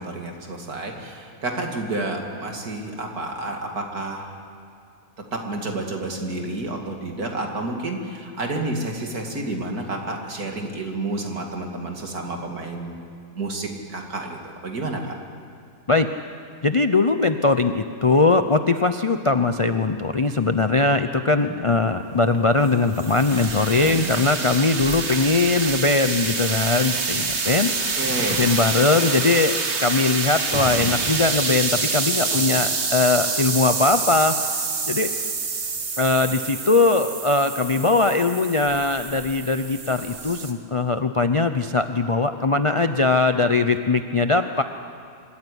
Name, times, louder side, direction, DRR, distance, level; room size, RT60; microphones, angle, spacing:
voice 1, 0.0-4.3 5.3-12.9 13.4-15.1 27.9-28.5, right 2 dB, 75° right, 2 dB, 2.9 m, -30 dB
voice 2, 16.6-28.0 28.4-34.4 34.9-35.1 36.0-44.6, left 3 dB, 45° left, 8 dB, 0.4 m, -20 dB
sound 1, 20.0-20.8 21.3-21.8 22.6-22.7 23.9-25.9 26.2-26.3 27.5-27.6 28.0-29.9 30.3-34.0 34.6-36.1, equal, 10° right, 4.4 m, -40 dB
sound 2, 22.3-40.5, right 4 dB, 50° right, 1.7 m, -27 dB
25.5 x 14.0 x 10.0 m, 2.5 s
omnidirectional pair, 1.6 m